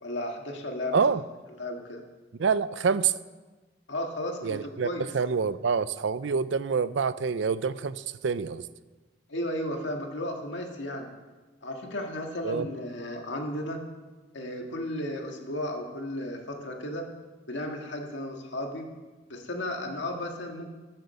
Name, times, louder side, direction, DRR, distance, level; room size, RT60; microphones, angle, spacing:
voice 1, 0.0-1.0 1.6-2.0 3.9-5.1 9.3-11.1 11.6-13.8 14.3-17.1 17.5-19.0 19.3-20.7, left 1 dB, 80° left, 2 dB, 1.8 m, -34 dB
voice 2, 0.9-1.2 2.4-3.1 4.4-4.9 5.1-8.7 12.4-12.7, right 5 dB, 80° right, 16 dB, 0.5 m, -26 dB
12.0 x 7.6 x 6.8 m, 1.2 s
head